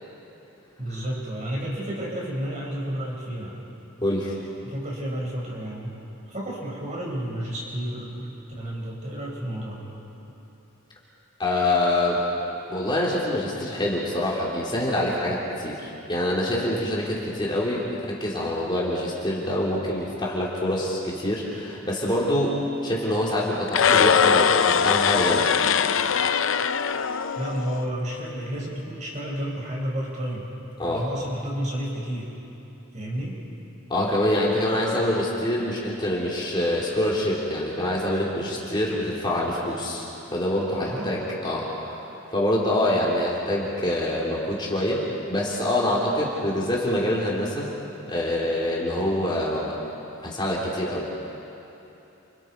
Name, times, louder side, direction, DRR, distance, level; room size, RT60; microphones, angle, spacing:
voice 1, 0.8-3.6 4.6-5.9 6.3-9.9 27.4-30.5 30.9-32.3 32.9-33.4 40.8-41.1, equal, 35° right, -3 dB, 6.0 m, -31 dB
voice 2, 4.0-4.4 11.4-12.3 12.7-25.5 30.8-31.1 33.9-47.7 48.0-49.8 50.2-51.1, left 1 dB, 20° left, -5 dB, 3.6 m, -25 dB
sound 1, 23.7-27.8, left 7 dB, 70° left, 0.7 m, -21 dB
30.0 x 28.5 x 4.7 m, 3.0 s
head